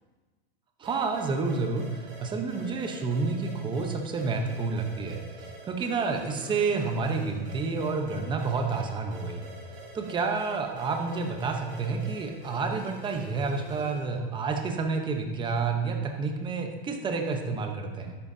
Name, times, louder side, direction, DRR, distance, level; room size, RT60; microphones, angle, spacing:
voice 1, 0.8-9.5 9.9-18.2, right 4 dB, 15° right, 4 dB, 0.9 m, -29 dB
sound 1, 0.8-14.2, right 2 dB, 40° right, 3.5 m, -47 dB
13.0 x 10.0 x 2.8 m, 1.4 s
supercardioid pair, 150°, 31 cm